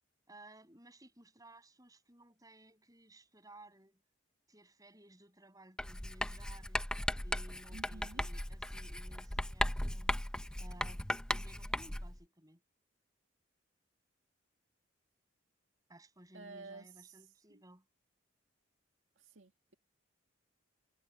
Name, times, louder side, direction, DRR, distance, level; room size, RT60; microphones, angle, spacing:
voice 1, 0.3-4.0 4.5-6.8 7.2-10.1 10.6-12.6 15.9-17.8, right 1 dB, 15° right, 7.5 m, -58 dB
Writing, 5.8-12.2, left 1 dB, 5° left, 0.4 m, -37 dB
voice 2, 7.7-8.3 16.3-17.6 19.2-19.7, right 3 dB, 70° right, 1.9 m, -52 dB
head